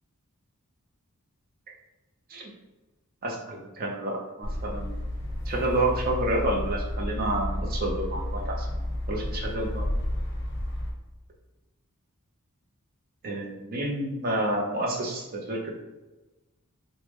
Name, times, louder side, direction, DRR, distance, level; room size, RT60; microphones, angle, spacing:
voice 1, 3.2-5.0 5.5-8.8 9.1-9.9 13.2-15.7, right 1 dB, 40° right, -1 dB, 0.6 m, -29 dB
sound 1, 4.4-10.9, left 1 dB, 50° left, 0.7 m, -31 dB
3.4 x 2.1 x 3.0 m, 1.1 s
head